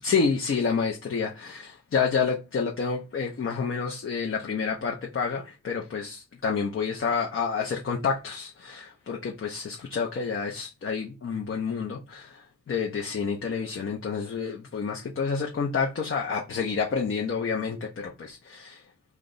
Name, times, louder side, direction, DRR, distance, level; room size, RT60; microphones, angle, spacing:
voice 1, 0.0-18.8, left 5 dB, 45° left, 0.7 m, -29 dB
2.4 x 2.0 x 3.8 m
supercardioid pair, 45°, 30 cm